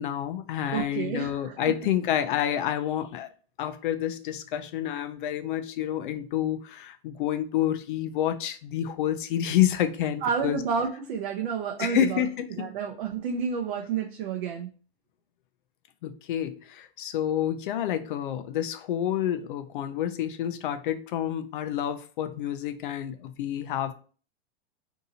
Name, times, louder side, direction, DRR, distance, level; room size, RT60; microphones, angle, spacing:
voice 1, 0.0-3.3 3.6-10.6 11.8-12.7 16.0-23.9, left 11 dB, 55° left, 9 dB, 0.4 m, -28 dB
voice 2, 0.7-1.6 10.2-14.7, right 6 dB, 55° right, 2 dB, 0.6 m, -30 dB
2.8 x 2.6 x 3.9 m, 0.38 s
supercardioid pair, 160°, 31 cm